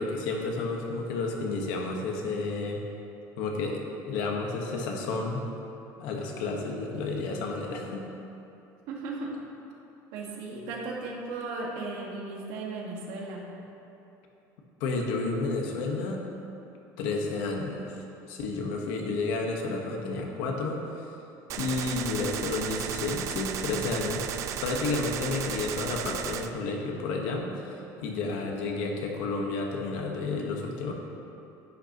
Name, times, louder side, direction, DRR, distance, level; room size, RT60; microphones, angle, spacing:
voice 1, 0.0-2.8 3.4-3.8 4.1-5.5 6.0-8.1 14.8-16.2 17.0-17.9 18.3-20.8 21.6-24.3 24.6-30.9, left 3 dB, 75° left, 1 dB, 1.3 m, -31 dB
voice 2, 8.9-9.4 10.1-13.5, right 3 dB, 75° right, -2 dB, 1.7 m, -36 dB
Gunshot gunfire, 21.5-26.5, right 9 dB, 45° right, 0.4 m, -34 dB
11.0 x 9.2 x 3.0 m, 2.9 s
cardioid pair, 170°, 8 cm